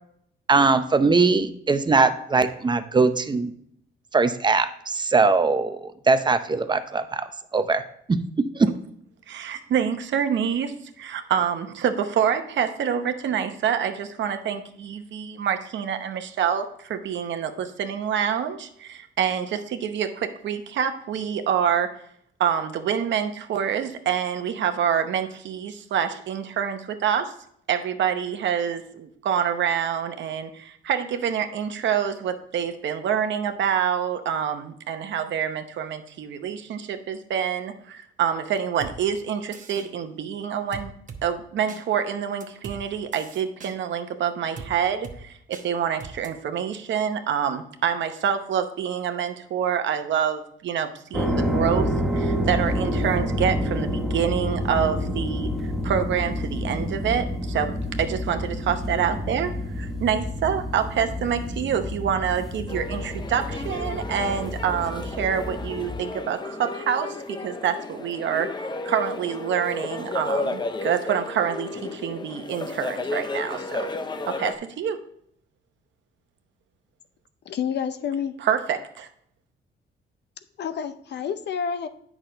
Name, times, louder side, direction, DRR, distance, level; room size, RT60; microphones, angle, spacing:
voice 1, 0.5-3.5 4.1-7.3 7.5-7.8 8.1-8.7, right 4 dB, 20° right, 10 dB, 0.6 m, -21 dB
voice 2, 9.3-21.9 22.4-27.3 27.7-40.9 41.2-55.5 55.8-68.5 68.8-73.9 74.3-75.0 78.4-79.1, right 8 dB, 65° right, 7 dB, 0.9 m, -26 dB
sound 1, 38.8-38.9 39.5-39.9 40.7-41.2 41.7-41.8 42.4-42.8 43.1-43.7 44.6-44.7 45.0-45.2 45.5-45.7 46.0-46.3, right 5 dB, 40° right, 1.0 m, -39 dB
sound 2, 51.1-66.0, left 1 dB, ahead, 1.5 m, -28 dB
sound 3, 62.7-74.5, left 2 dB, 20° left, 0.6 m, -33 dB
voice 3, 77.5-78.4 80.6-81.9, left 7 dB, 60° left, 11 dB, 0.6 m, -29 dB
8.4 x 6.1 x 3.9 m, 0.69 s
cardioid pair, 90°, 20 cm